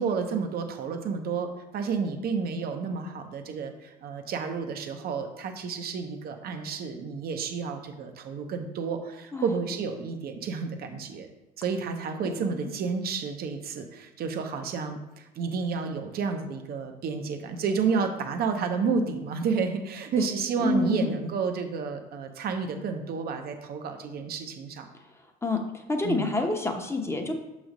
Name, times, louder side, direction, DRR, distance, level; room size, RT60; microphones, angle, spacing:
voice 1, 0.0-11.3 11.6-24.9 26.0-26.3, right 5 dB, 50° right, 5 dB, 0.9 m, -30 dB
voice 2, 12.3-12.7 20.6-21.1 25.4-27.3, left 3 dB, 15° left, 3 dB, 1.0 m, -28 dB
6.2 x 3.2 x 5.2 m, 0.98 s
supercardioid pair, 90°, 20 cm